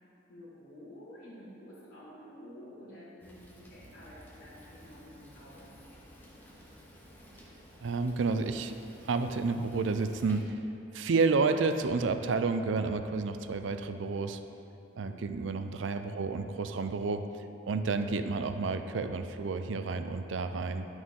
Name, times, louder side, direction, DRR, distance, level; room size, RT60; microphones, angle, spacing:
voice 1, 0.3-5.7 15.0-15.4, equal, 50° left, -13 dB, 1.9 m, -50 dB
Fire, 3.2-10.4, equal, 10° left, 1.4 m, -54 dB
voice 2, 7.8-8.7 9.1-10.6 10.9-14.4 15.0-20.9, right 4 dB, 70° right, 8 dB, 0.4 m, -30 dB
11.0 x 6.3 x 3.6 m, 2.8 s
head